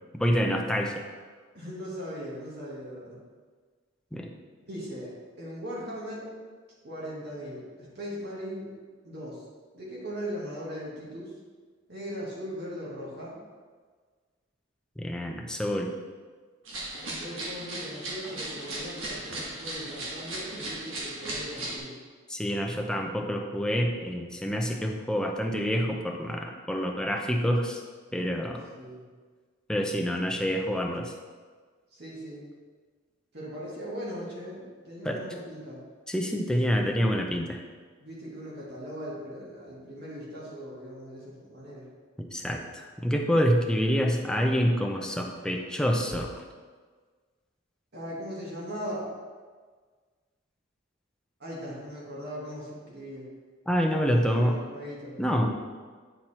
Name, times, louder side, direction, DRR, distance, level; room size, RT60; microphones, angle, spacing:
voice 1, 0.1-0.9 4.1-4.3 15.0-15.9 22.3-27.8 28.1-28.7 29.7-31.1 35.0-35.2 36.1-37.6 42.2-46.3 53.7-54.6 55.2-55.5, equal, 5° left, 2 dB, 0.6 m, -27 dB
voice 2, 1.5-3.2 4.6-6.3 6.8-8.7 9.0-9.4 9.7-11.3 11.9-13.4 17.1-21.9 28.8-29.0 31.9-32.5 33.3-35.8 38.0-41.9 47.9-49.1 51.4-53.3 54.1-55.2, equal, 55° right, -6 dB, 1.9 m, -39 dB
sound 1, 16.6-21.8, right 1 dB, 75° right, 1.7 m, -37 dB
9.2 x 4.5 x 4.3 m, 1.5 s
head